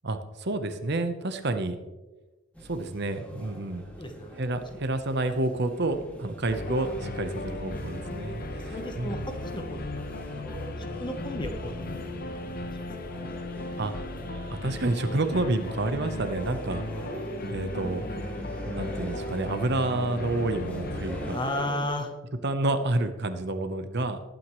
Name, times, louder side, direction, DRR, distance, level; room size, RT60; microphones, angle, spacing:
voice 1, 0.0-1.8 2.6-3.8 4.4-9.1 13.8-13.9 14.5-16.8 17.5-18.0 18.6-21.4 22.4-24.2, right 2 dB, 55° right, 8 dB, 1.0 m, -29 dB
sound 1, 2.5-21.9, equal, 5° left, 2.3 m, -42 dB
voice 2, 4.0-4.4 4.7-4.8 6.5-6.6 8.5-11.7 12.3-12.9 21.3-22.1, left 1 dB, 20° left, 5 dB, 1.1 m, -35 dB
sound 2, 6.5-21.4, left 2 dB, 45° left, 1.0 m, -36 dB
19.0 x 9.1 x 3.2 m, 1.2 s
head